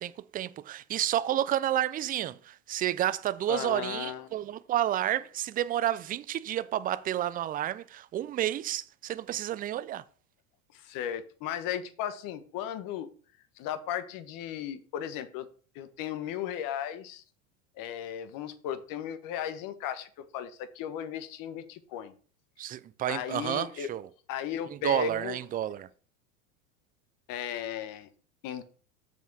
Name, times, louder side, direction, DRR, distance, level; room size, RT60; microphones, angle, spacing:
voice 1, 0.0-10.0 22.6-24.1 24.7-25.9, right 12 dB, 20° right, 0.4 m, -30 dB
voice 2, 3.5-4.3 10.7-13.1 13.6-15.5 15.7-17.2 17.8-22.1 23.1-23.9 24.3-25.4 27.3-28.1 28.4-28.6, left 10 dB, 50° left, 1.3 m, -36 dB
7.1 x 5.7 x 4.7 m
hypercardioid pair, 100°, 42 cm